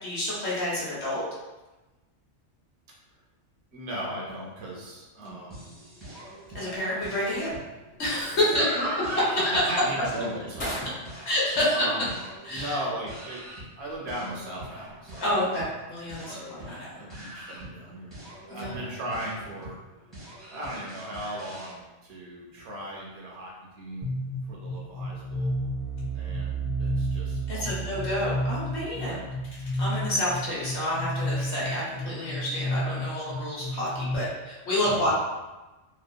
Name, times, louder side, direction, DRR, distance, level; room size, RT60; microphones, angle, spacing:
voice 1, 0.0-1.2 5.2-5.3 6.5-7.5 8.0-8.8 9.4-9.7 11.2-11.8 12.4-12.8 15.2-16.9 18.5-18.8 27.5-29.2 29.7-35.1, left 1 dB, 65° left, -7 dB, 1.1 m, -28 dB
voice 2, 3.7-5.6 8.5-9.4 9.7-11.0 11.7-12.1 12.5-13.4 13.8-15.4 16.3-16.7 17.0-18.2 18.5-19.8 20.5-24.1 24.5-25.5 26.1-27.9 28.2-28.3 28.9-29.2 34.8-35.1, right 1 dB, 65° right, -4 dB, 0.9 m, -36 dB
sound 1, 5.5-21.7, right 1 dB, ahead, 1.0 m, -45 dB
sound 2, 7.3-15.4, equal, 30° left, 0.8 m, -46 dB
sound 3, 24.0-34.2, right 1 dB, 35° right, 0.7 m, -31 dB
2.9 x 2.3 x 2.2 m, 1.1 s
omnidirectional pair, 1.3 m